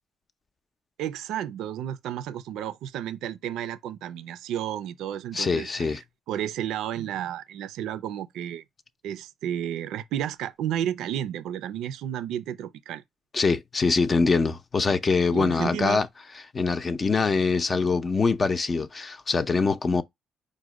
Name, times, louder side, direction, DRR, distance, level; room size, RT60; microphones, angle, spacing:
voice 1, 1.0-8.6 9.0-13.0 15.3-16.0, right 10 dB, 85° right, 0.4 m, -32 dB
voice 2, 5.3-6.0 13.3-16.1 16.5-20.0, left 4 dB, 35° left, 0.5 m, -24 dB
5.1 x 2.1 x 4.6 m
cardioid pair, 90°, 0 cm